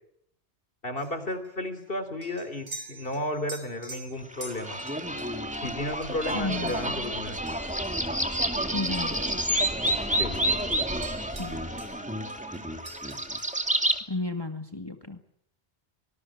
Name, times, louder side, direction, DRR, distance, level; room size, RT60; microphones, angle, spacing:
voice 1, 0.8-4.8 5.6-7.4 10.2-10.4, left 1 dB, 55° left, 10 dB, 3.6 m, -33 dB
sound 1, 1.0-9.6 9.9-12.0 12.3-13.8, right 2 dB, 60° right, 6.5 m, -47 dB
sound 2, 4.3-14.0, right 1 dB, 5° right, 2.4 m, -29 dB
voice 2, 6.3-6.7 8.7-9.2 11.3-11.6 14.1-15.2, left 3 dB, 20° left, 6 dB, 1.9 m, -32 dB
25.0 x 20.0 x 8.7 m, 0.72 s
omnidirectional pair, 1.1 m